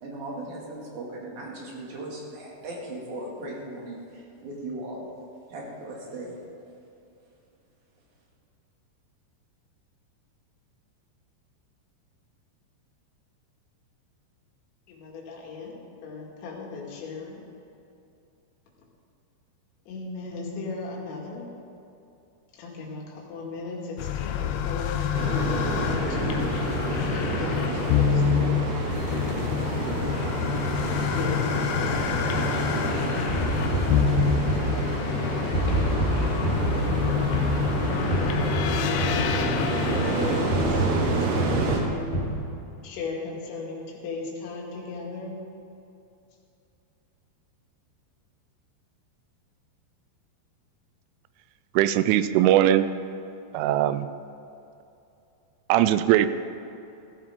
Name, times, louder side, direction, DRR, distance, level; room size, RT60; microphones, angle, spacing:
voice 1, 0.0-5.0 5.5-6.4, right 1 dB, 45° right, -3 dB, 3.2 m, -38 dB
voice 2, 14.9-15.7 16.0-17.4 19.9-21.4 22.5-26.5 27.0-28.7 29.4-30.5 31.0-32.5 38.9-42.1 42.8-45.4, left 4 dB, 70° left, -3 dB, 4.3 m, -37 dB
sound 1, 24.0-41.9, left 8 dB, 85° left, 3.2 m, -27 dB
sound 2, 25.1-41.8, right 4 dB, 65° right, 3.4 m, -29 dB
sound 3, 33.3-35.2 35.5-40.0 40.5-42.4, equal, 10° left, 2.2 m, -28 dB
voice 3, 51.8-52.9 53.5-54.1 55.7-56.3, right 12 dB, 90° right, 13 dB, 3.1 m, -20 dB
15.5 x 15.0 x 3.7 m, 2.8 s
omnidirectional pair, 5.5 m